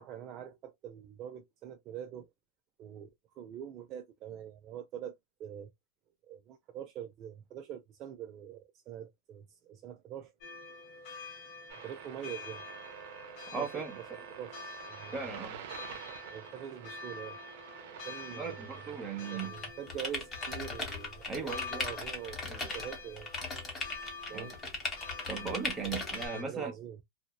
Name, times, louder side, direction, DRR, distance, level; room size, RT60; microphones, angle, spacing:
voice 1, 0.0-2.3 2.8-3.1 3.3-5.7 6.2-10.3 11.8-12.6 13.5-14.0 14.4-14.6 14.9-15.2 16.3-17.4 17.9-19.0 19.3-23.3 24.3-24.6 25.2-25.3 25.8-26.0 26.3-27.0, right 9 dB, 30° right, 0.3 m, -44 dB
sound 1, 10.4-26.4, left 4 dB, 50° left, 0.8 m, -47 dB
sound 2, 11.7-19.5, right 9 dB, 65° right, 0.7 m, -48 dB
voice 2, 13.5-14.0 15.1-15.6 18.3-19.5 21.3-21.8 22.4-22.7 24.3-24.5 25.3-26.7, right 5 dB, 10° right, 0.7 m, -38 dB
sound 3, 19.4-26.3, left 3 dB, 15° left, 0.9 m, -37 dB
2.7 x 2.0 x 2.2 m
supercardioid pair, 160°, 0 cm